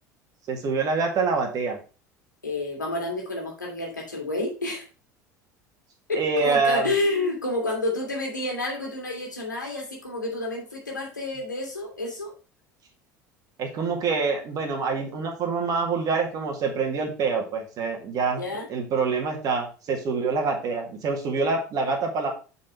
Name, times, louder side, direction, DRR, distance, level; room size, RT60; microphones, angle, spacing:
voice 1, 0.5-1.8 6.1-6.9 13.6-18.4 18.7-22.3, right 4 dB, 40° right, 2 dB, 2.0 m, -26 dB
voice 2, 2.4-4.8 6.1-12.3 18.4-18.7, left 2 dB, 80° left, 0 dB, 1.9 m, -29 dB
7.3 x 4.2 x 4.6 m, 0.34 s
figure-of-eight pair, 70°, 10 cm